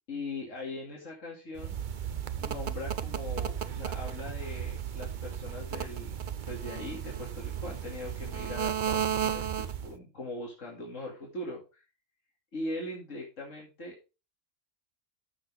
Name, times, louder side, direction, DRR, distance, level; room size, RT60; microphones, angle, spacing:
voice 1, 0.1-1.8 2.4-6.2 6.5-11.8 12.5-13.9, left 2 dB, 90° left, -2 dB, 2.8 m, -40 dB
sound 1, 1.6-10.0, right 9 dB, 45° right, 0.8 m, -34 dB
14.5 x 6.2 x 3.5 m, 0.30 s
omnidirectional pair, 1.3 m